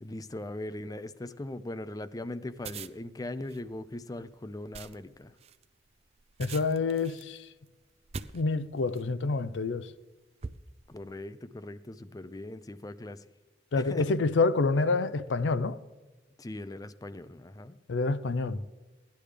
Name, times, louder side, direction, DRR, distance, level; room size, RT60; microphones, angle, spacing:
voice 1, 0.0-5.4 10.9-13.3 13.8-14.1 16.4-17.8, left 1 dB, 20° left, 0.4 m, -40 dB
sound 1, 2.5-9.2 9.8-10.0 10.4-11.1, right 5 dB, 35° right, 0.4 m, -44 dB
voice 2, 6.4-7.4 8.3-9.9 13.7-15.8 17.9-18.6, left 3 dB, 85° left, 0.5 m, -27 dB
17.0 x 10.5 x 3.3 m
head